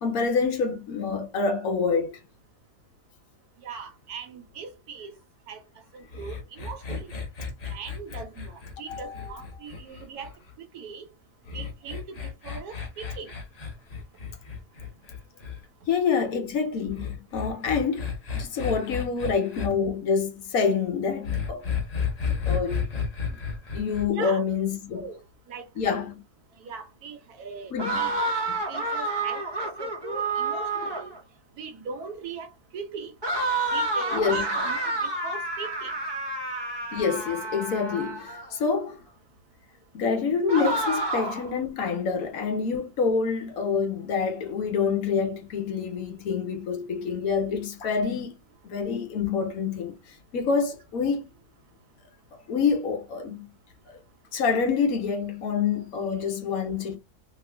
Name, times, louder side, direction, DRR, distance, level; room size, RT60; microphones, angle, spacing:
voice 1, 0.0-2.2 8.9-9.3 15.9-18.1 18.3-21.7 22.5-22.9 23.7-25.1 25.8-26.1 27.7-28.1 28.5-28.6 34.1-34.4 36.9-39.0 39.9-48.4 48.6-50.0 50.3-51.3 52.3-53.5 54.3-57.0, left 5 dB, 70° left, 1.2 m, -27 dB
voice 2, 3.6-5.1 5.5-5.6 5.9-7.1 7.6-10.3 10.7-11.0 11.5-13.3 24.1-24.4 24.9-25.2 25.5-26.0 26.6-28.1 28.7-31.1 31.6-33.1 33.7-35.9, right 5 dB, 80° right, 1.3 m, -40 dB
sound 1, 6.1-10.5 11.5-15.6 16.9-19.7 21.2-24.1, left 6 dB, 35° left, 0.6 m, -32 dB
sound 2, 27.8-31.2 33.2-38.5 40.5-41.5, right 2 dB, 20° right, 0.9 m, -29 dB
3.0 x 2.4 x 3.3 m
omnidirectional pair, 1.6 m